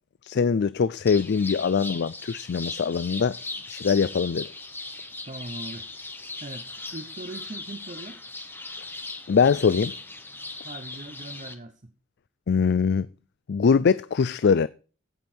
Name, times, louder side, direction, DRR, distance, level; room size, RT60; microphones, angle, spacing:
voice 1, 0.2-3.3 3.7-4.5 9.3-9.9 12.5-13.1 13.5-14.7, left 5 dB, 55° left, 0.4 m, -22 dB
sound 1, 1.1-11.6, left 3 dB, 10° left, 1.1 m, -38 dB
voice 2, 5.3-5.9 6.4-8.2 10.6-11.9, right 2 dB, 40° right, 0.9 m, -40 dB
16.0 x 5.4 x 4.5 m
head